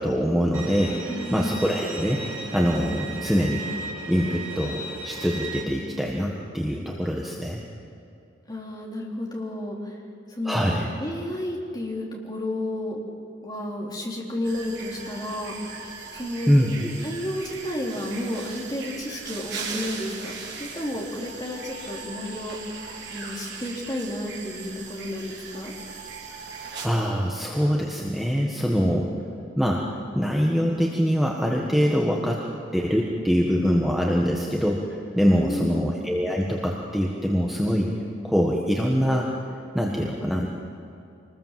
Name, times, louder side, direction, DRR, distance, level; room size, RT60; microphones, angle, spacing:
voice 1, 0.0-2.2 2.5-3.6 4.1-7.6 10.4-10.9 16.5-16.9 26.8-29.1 29.6-29.8 30.1-32.4 32.7-34.8 35.2-37.9 38.2-39.3 39.7-40.5, equal, ahead, -2 dB, 1.5 m, -24 dB
Bowed string instrument, 0.5-5.6, right 3 dB, 80° right, 4.9 m, -36 dB
voice 2, 1.1-1.6 8.5-10.0 10.3-10.6 11.0-13.0 13.4-15.8 16.1-16.5 17.0-22.6 23.1-25.7 35.4-35.9, left 1 dB, 20° left, -2 dB, 3.5 m, -32 dB
sound 1, 14.4-26.9, right 4 dB, 55° right, 4.0 m, -38 dB
26.0 x 20.5 x 7.6 m, 2.6 s
head